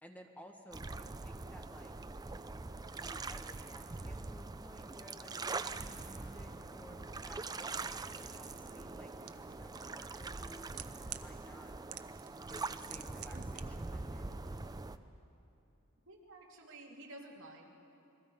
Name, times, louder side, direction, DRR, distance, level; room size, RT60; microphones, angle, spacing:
voice 1, 0.0-1.9 2.9-7.0 7.3-10.7 11.1-11.7 12.2-14.3, equal, 5° left, 3 dB, 1.3 m, -56 dB
sound 1, 0.7-15.0, right 3 dB, 20° right, 0.5 m, -43 dB
sound 2, 3.6-14.9, equal, 55° left, 5.0 m, -63 dB
sound 3, 9.3-9.4 10.3-11.3 11.9-12.3 12.6-13.6 13.9-14.0, right 13 dB, 85° right, 0.8 m, -45 dB
voice 2, 16.1-17.7, right 2 dB, 65° right, 0 dB, 2.5 m, -52 dB
28.5 x 22.0 x 5.3 m, 2.8 s
head